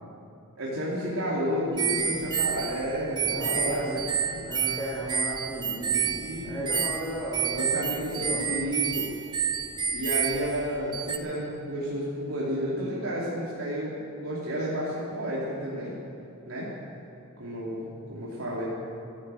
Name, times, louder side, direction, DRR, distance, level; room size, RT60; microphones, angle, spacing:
voice 1, 0.6-3.9 4.2-4.4 6.0-6.7 7.5-9.1 9.9-16.0 16.4-16.7 17.4-18.7, equal, 75° right, -7 dB, 2.9 m, -31 dB
sound 1, 1.8-11.2, right 7 dB, 20° right, 0.6 m, -29 dB
voice 2, 3.2-4.0 4.4-6.2 6.4-8.8, right 1 dB, 10° left, -3 dB, 3.5 m, -35 dB
15.0 x 11.5 x 7.8 m, 2.9 s
head